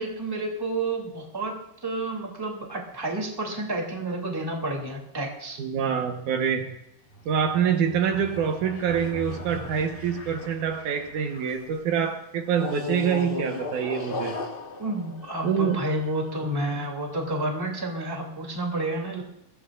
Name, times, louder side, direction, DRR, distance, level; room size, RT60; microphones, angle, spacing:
voice 1, 0.0-1.6 1.8-5.6 14.8-19.2, right 2 dB, 10° right, 0 dB, 2.3 m, -30 dB
voice 2, 5.6-6.7 7.3-14.4 15.4-15.8, right 7 dB, 70° right, 5 dB, 2.6 m, -26 dB
sound 1, 7.1-11.7 12.5-16.1, left 2 dB, 80° left, 0.5 m, -37 dB
21.0 x 16.0 x 2.5 m, 0.83 s
omnidirectional pair, 3.7 m